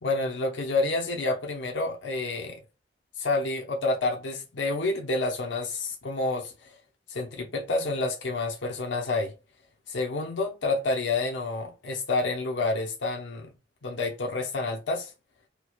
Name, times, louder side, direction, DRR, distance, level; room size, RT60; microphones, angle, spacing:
voice 1, 0.0-2.6 3.2-6.7 7.1-9.3 9.9-13.5 13.8-15.1, left 2 dB, 75° left, 0.7 m, -29 dB
4.5 x 2.2 x 2.4 m
head